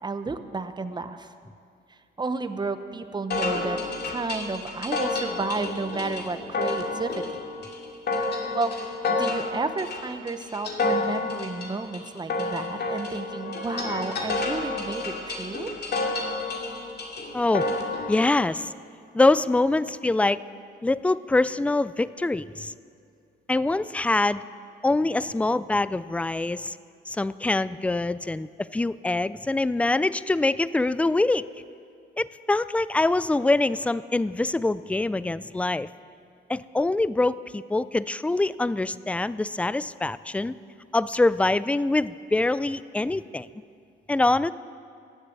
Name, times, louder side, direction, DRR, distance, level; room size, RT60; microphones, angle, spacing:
voice 1, 0.0-1.3 1.9-3.8 4.1-7.2 8.5-15.7, right 3 dB, 20° right, 10 dB, 0.9 m, -32 dB
sound 1, 3.3-18.3, left 3 dB, 55° left, 2.3 m, -30 dB
voice 2, 17.3-17.7 18.1-18.7 19.1-20.4 20.8-22.7 23.5-24.4 24.8-26.8 27.1-31.4 32.2-35.9 36.5-40.5 40.9-43.5 44.1-44.5, left 2 dB, 5° left, 17 dB, 0.3 m, -24 dB
15.5 x 7.5 x 9.4 m, 2.4 s
cardioid pair, 90°, 20 cm